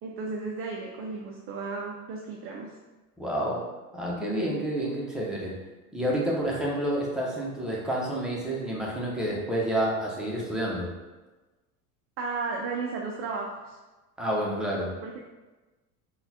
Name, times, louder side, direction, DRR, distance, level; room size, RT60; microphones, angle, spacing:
voice 1, 0.0-2.7 12.2-13.8 15.0-15.2, right 4 dB, 30° right, 0 dB, 0.4 m, -34 dB
voice 2, 3.2-3.7 3.9-5.5 5.9-10.9 14.2-14.9, right 1 dB, ahead, -4 dB, 0.8 m, -29 dB
3.8 x 2.4 x 2.8 m, 1.2 s
hypercardioid pair, 85°, 45 cm